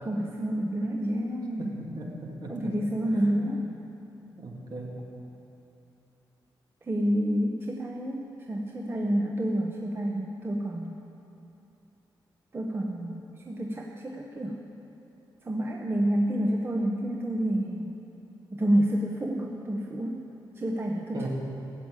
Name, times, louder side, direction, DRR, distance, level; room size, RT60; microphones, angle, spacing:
voice 1, 0.0-1.7 2.5-3.6 6.8-10.9 12.5-14.6 15.4-17.9 18.5-20.2 20.6-21.3, right 1 dB, 30° right, -1 dB, 1.0 m, -29 dB
voice 2, 1.6-2.8 3.1-3.3 4.4-4.9 21.1-21.3, right 2 dB, 55° right, -2 dB, 2.6 m, -39 dB
14.5 x 7.4 x 8.9 m, 2.8 s
wide cardioid pair, 110°, 8 cm